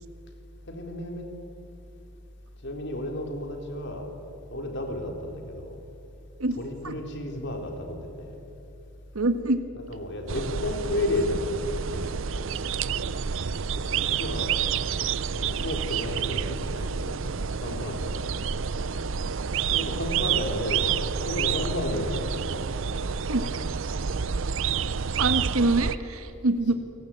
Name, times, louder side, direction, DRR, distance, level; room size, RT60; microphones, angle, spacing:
voice 1, 0.7-1.3 2.6-4.1 4.5-5.8 6.5-8.4 9.7-12.1 13.7-14.5 15.4-17.2 17.6-18.2 19.4-20.9 21.3-22.2 26.7-26.8, left 1 dB, 55° left, 3 dB, 4.1 m, -32 dB
voice 2, 9.1-9.6 23.3-23.4 25.2-26.7, right 2 dB, 85° right, 8 dB, 1.5 m, -25 dB
sound 1, 10.3-26.0, right 6 dB, 60° right, 0.6 m, -29 dB
28.0 x 19.0 x 8.8 m, 3.0 s
head